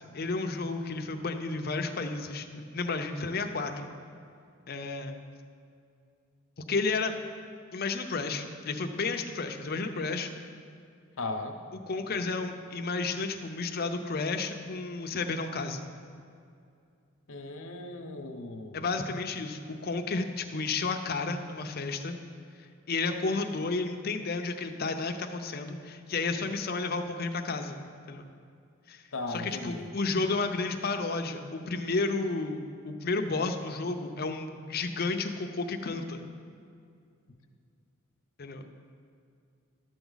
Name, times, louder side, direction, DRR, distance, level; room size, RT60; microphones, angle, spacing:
voice 1, 0.1-3.9 4.7-5.2 6.7-7.1 7.7-10.3 11.9-15.8 18.7-22.2 22.6-27.8 28.1-28.3 28.9-29.0 29.3-36.3 38.4-38.6, left 3 dB, 45° left, 5 dB, 0.6 m, -32 dB
voice 2, 11.2-11.6 17.3-18.8 29.1-29.9, left 2 dB, 75° left, 4 dB, 0.8 m, -37 dB
11.5 x 7.0 x 3.9 m, 2.4 s
head